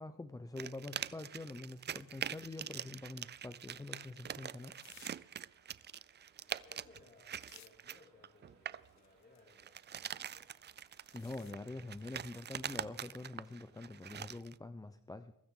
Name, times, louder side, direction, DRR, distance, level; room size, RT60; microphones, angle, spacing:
voice 1, 0.0-4.8 11.1-15.3, left 2 dB, 10° left, 10 dB, 0.7 m, -46 dB
sound 1, 0.6-8.9 9.5-14.5, right 9 dB, 35° right, 0.5 m, -44 dB
sound 2, 3.0-13.8, right 5 dB, 80° right, 3.9 m, -72 dB
sound 3, 4.1-5.3 5.6-7.7 8.1-8.2 8.7-11.5 11.8-12.7, left 12 dB, 65° left, 0.9 m, -64 dB
voice 2, 6.5-10.4, left 3 dB, 35° left, 0 dB, 6.8 m, -64 dB
22.5 x 13.0 x 3.8 m, 0.86 s
cardioid pair, 90°, 30 cm